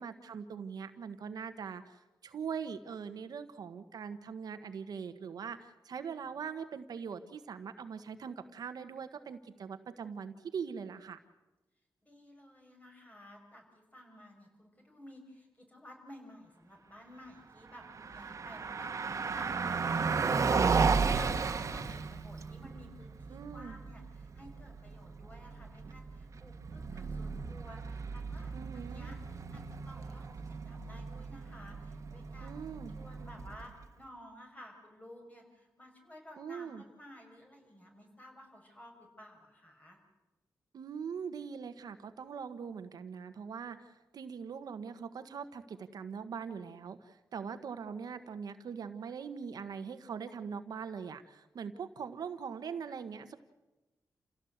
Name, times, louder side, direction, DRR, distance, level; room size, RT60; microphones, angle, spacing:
voice 1, 0.0-2.0 2.2-11.2 23.3-23.8 28.5-29.1 32.4-32.9 36.4-36.8 40.7-53.4, right 6 dB, 80° right, 9 dB, 1.3 m, -42 dB
voice 2, 12.0-20.2 20.5-32.6 32.9-40.0, equal, 20° left, 2 dB, 6.2 m, -53 dB
Car passing by, 17.7-33.8, right 5 dB, 50° right, 1.5 m, -34 dB
28.5 x 16.5 x 8.1 m, 1.1 s
wide cardioid pair, 105°, 7 cm